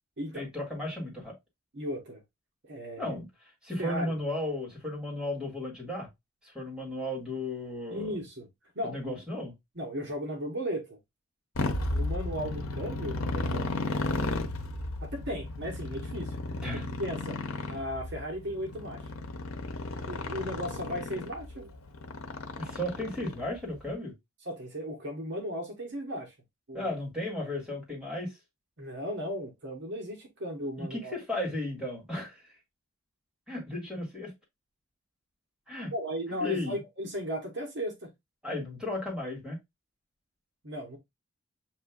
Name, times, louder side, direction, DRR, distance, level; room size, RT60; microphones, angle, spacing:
voice 1, 0.3-1.4 3.0-6.1 6.4-8.2 8.8-9.5 16.6-16.9 22.6-24.1 26.7-28.4 30.8-32.6 33.5-34.3 35.7-35.9 36.4-36.8 38.4-39.6, left 1 dB, 5° right, 1.8 m, -35 dB
voice 2, 1.7-2.2 2.6-3.2 3.8-4.2 7.9-8.5 8.7-9.1 9.8-11.0 11.9-13.7 15.0-16.4 17.0-17.4 17.7-19.1 20.1-21.7 24.4-26.3 26.7-26.9 28.8-31.2 35.9-38.1 40.6-41.0, equal, 55° right, 1.1 m, -36 dB
Motorcycle, 11.5-23.7, left 2 dB, 85° left, 0.8 m, -34 dB
7.5 x 2.7 x 2.3 m
head